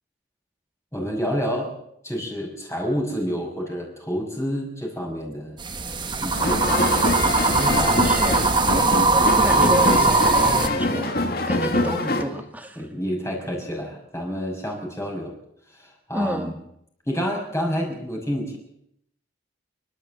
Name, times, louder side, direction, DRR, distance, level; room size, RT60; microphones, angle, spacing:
voice 1, 0.9-1.8 2.0-5.6 6.2-6.8 7.7-8.0 12.8-15.3 15.7-16.5 17.1-18.6, equal, 15° left, 0 dB, 6.2 m, -28 dB
sound 1, 5.6-10.7, right 3 dB, 25° right, 1.3 m, -20 dB
sound 2, 6.3-12.2, left 2 dB, 55° left, 2.1 m, -24 dB
voice 2, 6.4-7.2 8.0-11.1 11.5-12.9 16.1-16.5, right 1 dB, 10° right, 5 dB, 2.2 m, -30 dB
28.5 x 12.0 x 7.9 m, 0.75 s
head